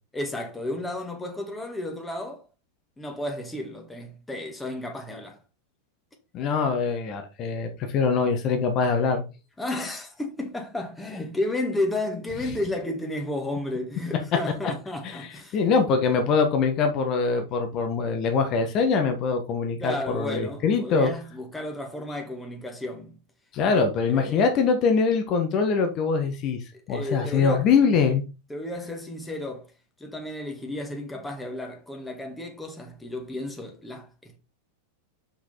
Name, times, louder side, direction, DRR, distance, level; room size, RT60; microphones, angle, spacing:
voice 1, 0.1-2.4 3.0-5.4 9.6-15.6 19.8-23.2 23.6-23.8 24.1-24.4 26.7-27.7 28.5-29.7 30.0-34.4, left 1 dB, 10° left, 1.8 m, -33 dB
voice 2, 6.3-9.2 15.0-15.3 15.5-21.1 23.5-26.6 26.9-28.2, left 5 dB, 35° left, 1.5 m, -23 dB
5.8 x 5.6 x 4.3 m
figure-of-eight pair, 90°, 0 cm